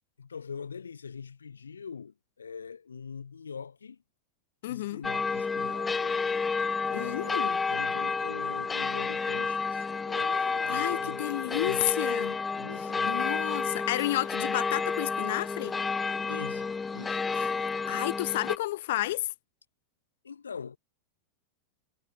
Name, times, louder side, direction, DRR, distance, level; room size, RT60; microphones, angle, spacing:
voice 1, 0.2-4.0 4.6-6.2 6.9-11.9 12.6-13.3 16.3-17.2 20.2-20.8, left 6 dB, 70° left, 7.9 m, -43 dB
voice 2, 4.6-5.0 6.9-7.6 10.7-12.4 12.8-15.8 17.3-19.3, left 16 dB, 55° left, 1.1 m, -32 dB
sound 1, 5.0-18.6, left 4 dB, 15° left, 0.4 m, -30 dB
figure-of-eight pair, 90°, 0 cm